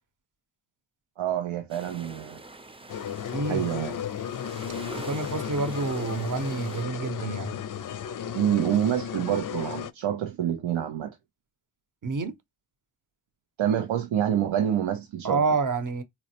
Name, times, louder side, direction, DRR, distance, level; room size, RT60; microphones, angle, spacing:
voice 1, 1.2-2.4 3.5-4.0 8.3-11.1 13.6-15.4, right 10 dB, 90° right, 0.6 m, -27 dB
sound 1, 1.7-6.8, right 2 dB, 15° right, 0.5 m, -45 dB
sound 2, 2.9-9.9, left 8 dB, 45° left, 0.4 m, -34 dB
voice 2, 3.3-3.6 5.0-7.5 12.0-12.3 15.2-16.0, right 4 dB, 40° right, 0.8 m, -28 dB
4.1 x 2.0 x 2.8 m
cardioid pair, 60°, 46 cm